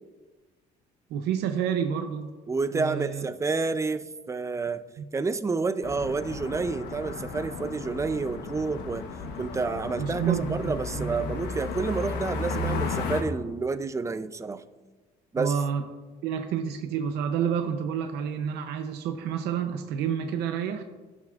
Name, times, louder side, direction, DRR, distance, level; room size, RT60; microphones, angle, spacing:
voice 1, 1.1-2.3 2.7-3.3 5.0-5.1 10.0-11.3 15.4-15.8 16.2-20.8, right 8 dB, 80° right, 6 dB, 0.7 m, -29 dB
voice 2, 2.5-4.8 5.1-9.1 9.4-14.6 15.3-15.6, right 4 dB, 15° right, 13 dB, 0.5 m, -29 dB
sound 1, 5.8-13.2, left 4 dB, 85° left, 1.1 m, -34 dB
16.0 x 6.0 x 2.4 m, 1.3 s
cardioid pair, 110°, 17 cm